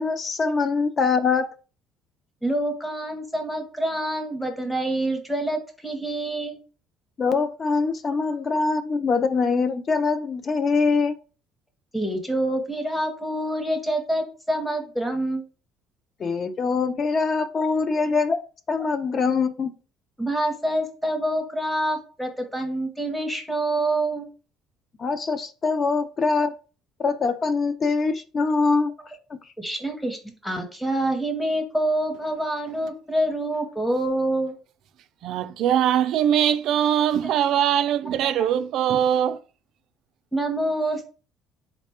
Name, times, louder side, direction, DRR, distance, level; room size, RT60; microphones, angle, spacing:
voice 1, 0.0-1.5 7.2-11.2 16.2-18.4 18.7-19.7 25.0-26.5 27.0-28.9 29.3-29.4, left 4 dB, 30° left, 0.4 m, -23 dB
voice 2, 2.4-6.6 11.9-15.4 20.2-24.3 29.6-30.2 30.4-34.5 40.3-41.0, right 1 dB, 5° left, 0.7 m, -26 dB
voice 3, 35.2-39.4, right 10 dB, 55° right, 0.3 m, -22 dB
4.0 x 2.2 x 4.2 m
cardioid pair, 155°, 0 cm